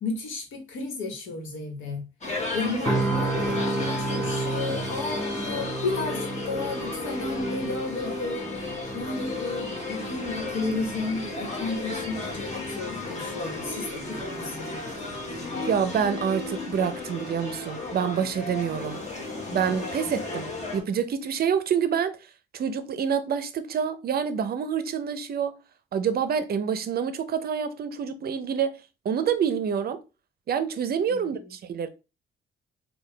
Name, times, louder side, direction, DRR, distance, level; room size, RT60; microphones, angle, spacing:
voice 1, 0.0-2.1 2.5-8.5 8.9-15.5 31.1-31.5, left 3 dB, 85° left, 1.1 m, -33 dB
sound 1, 2.2-20.8, left 3 dB, 35° left, 1.2 m, -34 dB
sound 2, 2.8-16.8 17.2-17.4, right 2 dB, 10° left, 1.1 m, -34 dB
voice 2, 15.7-19.0 19.5-22.2 22.5-25.6 25.9-30.0 30.5-31.9, right 7 dB, 50° right, 0.5 m, -27 dB
3.8 x 2.3 x 3.2 m
cardioid pair, 90°, 20 cm